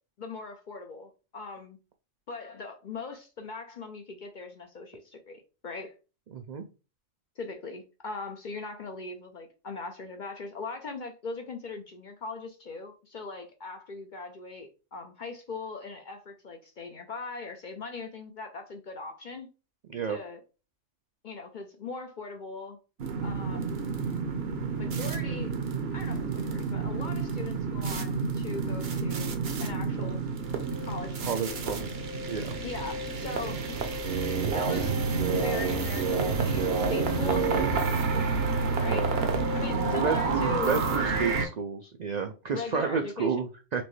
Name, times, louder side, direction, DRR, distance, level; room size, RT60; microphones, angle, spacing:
voice 1, 0.2-1.8 2.3-6.0 7.4-19.5 20.1-20.4 21.2-22.8 23.2-23.7 24.8-25.5 25.9-30.2 30.8-31.8 32.6-33.8 34.4-35.0 35.3-38.3 38.8-39.1 39.5-40.7 42.5-43.3, left 4 dB, 55° left, 0.6 m, -40 dB
voice 2, 6.3-6.6 19.9-20.2 31.2-32.6 38.7-39.1 39.9-43.8, right 6 dB, 75° right, 0.4 m, -31 dB
sound 1, 23.0-41.5, right 4 dB, 60° right, 0.9 m, -29 dB
4.3 x 3.1 x 3.1 m
omnidirectional pair, 1.3 m